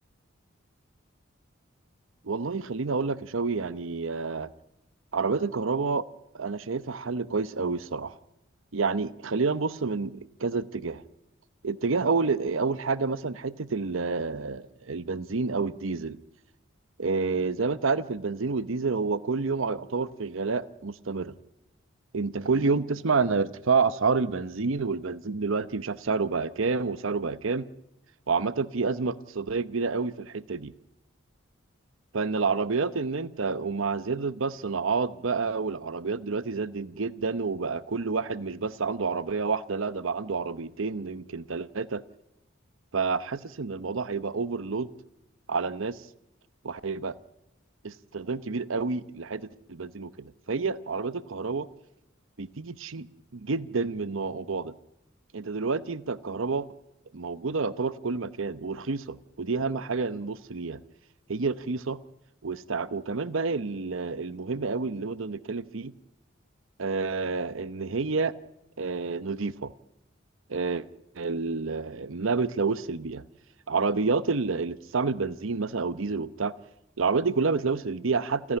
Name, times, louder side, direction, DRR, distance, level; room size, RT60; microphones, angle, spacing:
voice 1, 2.2-4.5 5.1-6.1 6.3-8.1 8.7-11.0 11.6-16.2 17.0-21.3 22.1-27.7 28.3-30.7 32.1-42.0 42.9-44.9 45.5-46.1 46.6-47.1 47.8-51.7 52.4-53.1 53.3-54.7 55.3-56.7 57.1-60.8 61.3-62.0 62.4-65.9 66.8-68.3 68.8-69.7 70.5-70.9 71.1-73.2 73.7-76.5 77.0-78.6, right 4 dB, 75° right, 15 dB, 0.8 m, -29 dB
29.0 x 11.0 x 9.9 m, 0.88 s
head